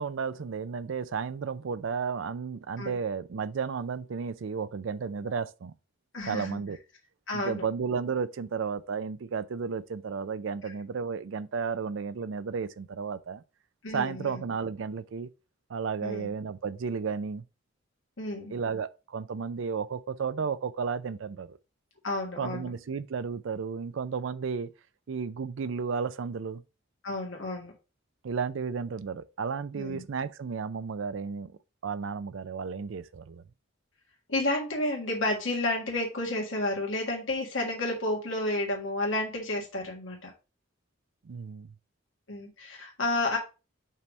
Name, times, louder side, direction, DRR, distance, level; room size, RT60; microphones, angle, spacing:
voice 1, 0.0-5.7 6.3-6.8 7.3-13.4 13.9-15.3 15.7-17.4 18.5-21.6 22.4-24.7 25.1-26.6 28.2-31.5 31.8-33.4 41.2-41.7, right 5 dB, 75° right, 0.4 m, -33 dB
voice 2, 6.1-6.6 7.3-7.7 13.8-14.4 16.0-16.3 18.2-18.6 22.0-22.7 27.0-27.7 29.8-30.0 34.3-40.3 42.3-43.4, left 2 dB, 75° left, 1.6 m, -31 dB
5.5 x 3.4 x 5.2 m
head